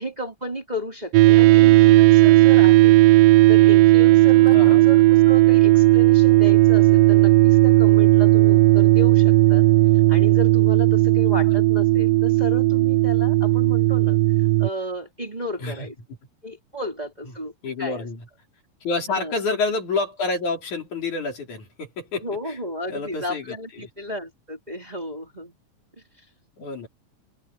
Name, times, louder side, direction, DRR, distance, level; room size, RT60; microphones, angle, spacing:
voice 1, 0.0-2.9 3.5-9.7 10.1-14.2 14.6-15.9 16.4-17.5 17.8-18.1 19.1-19.3 22.2-25.6, left 1 dB, 10° right, 4.4 m, -33 dB
sound 1, 1.1-14.7, right 18 dB, 85° right, 2.2 m, -15 dB
voice 2, 4.5-4.9 11.5-11.6 15.6-15.8 17.6-18.2 18.8-22.6 22.9-23.9 26.6-26.9, left 3 dB, 65° left, 5.6 m, -28 dB
open air
omnidirectional pair, 3.8 m